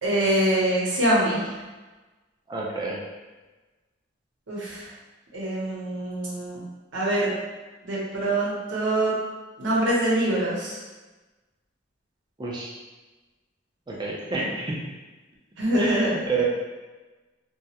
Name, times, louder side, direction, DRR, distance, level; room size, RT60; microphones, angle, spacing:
voice 1, 0.0-1.5 4.5-4.9 5.3-6.6 6.9-7.3 7.8-9.1 9.6-10.8 15.6-16.1, right 1 dB, 75° right, -6 dB, 0.7 m, -24 dB
voice 2, 2.5-3.0 12.4-12.7 13.9-14.8 15.7-16.4, right 3 dB, 20° right, -3 dB, 0.4 m, -29 dB
2.2 x 2.0 x 2.7 m, 1.2 s
head